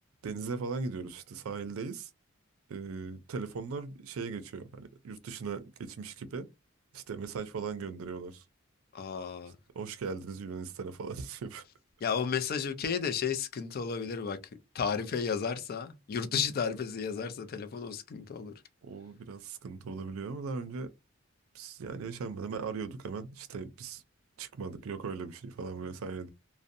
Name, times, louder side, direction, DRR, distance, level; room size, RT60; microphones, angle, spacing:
voice 1, 0.2-2.1 2.7-6.5 6.9-8.4 9.7-11.6 18.8-20.9 21.5-24.0 24.4-26.3, right 5 dB, 90° right, 0.4 m, -38 dB
voice 2, 8.9-9.6 12.0-14.4 14.7-18.5, left 6 dB, 45° left, 0.4 m, -33 dB
2.5 x 2.0 x 2.5 m
head